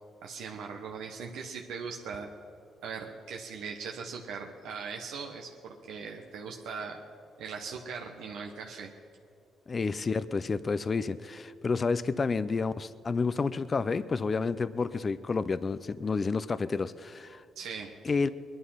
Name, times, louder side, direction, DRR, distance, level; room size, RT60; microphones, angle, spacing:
voice 1, 0.2-2.3 2.8-7.0 7.4-8.9 17.5-17.9, right 5 dB, 80° right, 1 dB, 1.1 m, -40 dB
voice 2, 9.7-17.4 18.0-18.3, left 4 dB, 35° left, 15 dB, 0.5 m, -30 dB
21.0 x 11.0 x 5.7 m, 2.6 s
cardioid pair, 90°, 0 cm